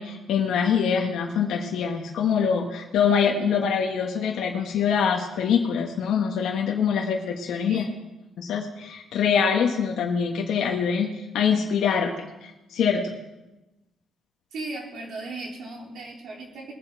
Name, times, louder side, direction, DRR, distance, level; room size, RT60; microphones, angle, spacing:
voice 1, 0.0-7.9 8.4-13.1, left 7 dB, 80° left, 0 dB, 1.3 m, -24 dB
voice 2, 7.7-8.0 14.5-16.7, right 2 dB, 70° right, -2 dB, 3.6 m, -37 dB
20.5 x 7.6 x 4.6 m, 1.0 s
cardioid pair, 155°, 0 cm